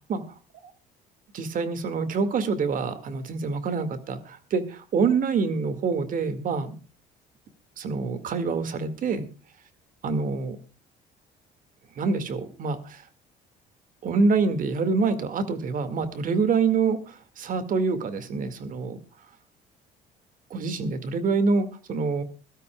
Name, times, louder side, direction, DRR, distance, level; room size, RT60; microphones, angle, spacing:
voice 1, 1.3-6.8 7.8-9.3 10.0-10.6 12.0-13.0 14.0-19.0 20.5-22.2, right 4 dB, 55° right, 11 dB, 2.0 m, -26 dB
22.0 x 12.5 x 2.3 m, 0.35 s
cardioid pair, 110°, 17 cm